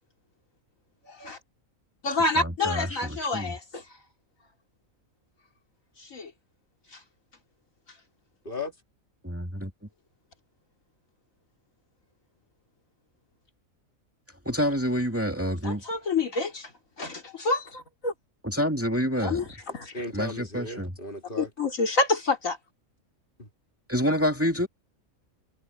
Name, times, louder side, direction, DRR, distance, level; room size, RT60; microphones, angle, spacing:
voice 1, 1.1-1.4 2.0-3.8 6.0-6.3 6.9-7.0 15.6-16.7 17.0-18.1 19.2-19.5 19.7-19.9 21.4-22.6, left 3 dB, 70° left, 3.1 m, -28 dB
voice 2, 2.4-3.6 9.2-9.7 14.5-15.8 18.4-19.4 20.1-20.9 23.9-24.7, equal, 10° right, 2.2 m, -27 dB
voice 3, 19.9-21.5 23.4-23.5, left 3 dB, 35° left, 3.1 m, -36 dB
omnidirectional pair, 1.4 m